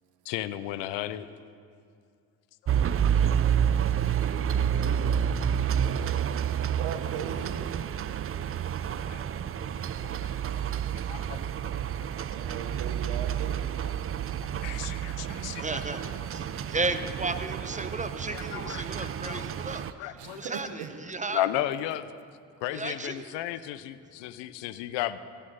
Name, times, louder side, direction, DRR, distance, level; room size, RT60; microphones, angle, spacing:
voice 1, 0.3-1.3 2.6-2.7 3.2-3.4 9.0-9.2 10.2-10.4 11.1-11.4 14.6-16.0 18.3-19.4 20.0-20.5 21.3-22.1 22.6-25.2, left 13 dB, 85° left, 15 dB, 0.6 m, -34 dB
sound 1, 2.7-19.9, right 9 dB, 35° right, 0.4 m, -29 dB
voice 2, 4.6-5.8 6.3-7.6 12.2-13.7 20.2-20.9, right 8 dB, 75° right, 8 dB, 1.1 m, -41 dB
voice 3, 15.6-16.0 16.3-16.4 16.7-21.5 22.7-23.3, right 3 dB, 15° right, 9 dB, 0.8 m, -34 dB
15.5 x 6.7 x 5.5 m, 2.3 s
supercardioid pair, 55°, 42 cm